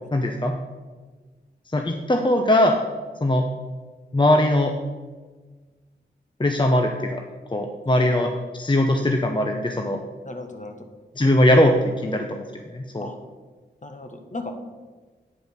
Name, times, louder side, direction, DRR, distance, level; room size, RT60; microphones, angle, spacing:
voice 1, 0.1-0.5 1.7-2.8 3.2-3.4 4.1-4.7 6.4-7.2 7.5-8.3 8.6-10.0 11.2-13.1, left 1 dB, 25° left, 3 dB, 0.8 m, -20 dB
voice 2, 7.9-8.3 10.2-10.9 13.0-13.2 13.8-14.8, left 2 dB, 40° left, 5 dB, 1.5 m, -36 dB
9.2 x 5.1 x 6.6 m, 1.4 s
cardioid pair, 45°, 19 cm